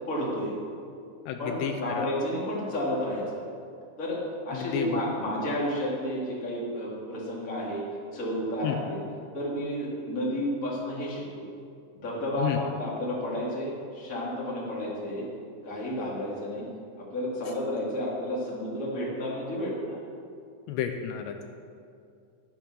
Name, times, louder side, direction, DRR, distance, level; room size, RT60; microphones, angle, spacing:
voice 1, 0.1-0.5 1.4-3.4 4.0-4.2 4.5-7.8 8.1-9.0 9.3-11.2 12.0-15.2 15.6-16.7 17.1-20.0, equal, 25° left, -5 dB, 1.8 m, -31 dB
voice 2, 1.3-2.1 4.5-5.0 8.6-8.8 12.4-12.6 20.7-21.4, left 10 dB, 85° left, 5 dB, 2.6 m, -31 dB
11.5 x 9.3 x 6.5 m, 2.4 s
omnidirectional pair, 5.6 m